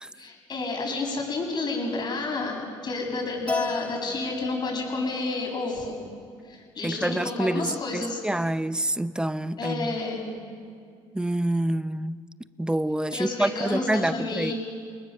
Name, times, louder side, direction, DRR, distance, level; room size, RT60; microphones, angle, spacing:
voice 1, 0.2-6.0 6.5-8.2 9.6-10.3 13.1-14.5, left 3 dB, 40° left, 7.6 m, -30 dB
Keyboard (musical), 3.5-5.8, left 2 dB, 10° left, 1.6 m, -35 dB
voice 2, 6.8-10.0 11.1-12.2 12.6-14.5, right 1 dB, 5° right, 0.6 m, -27 dB
29.0 x 19.5 x 6.6 m
supercardioid pair, 85°, 11 cm